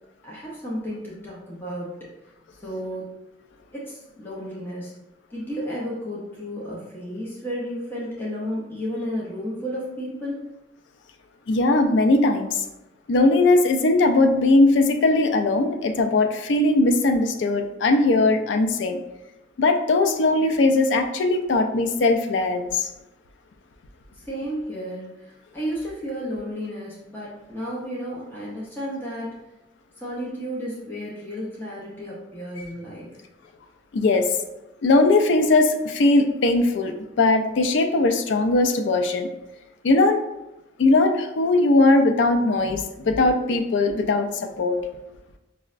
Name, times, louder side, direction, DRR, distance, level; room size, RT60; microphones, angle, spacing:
voice 1, 0.2-2.0 2.6-3.1 3.7-4.9 5.3-10.5 24.1-29.3 30.0-33.2, equal, 10° left, -6 dB, 0.6 m, -32 dB
voice 2, 11.5-12.6 13.1-19.0 19.6-22.9 33.9-34.3 34.8-39.3 39.8-40.2 40.8-44.8, left 2 dB, 75° left, 6 dB, 0.4 m, -19 dB
5.2 x 2.1 x 2.4 m, 0.96 s
head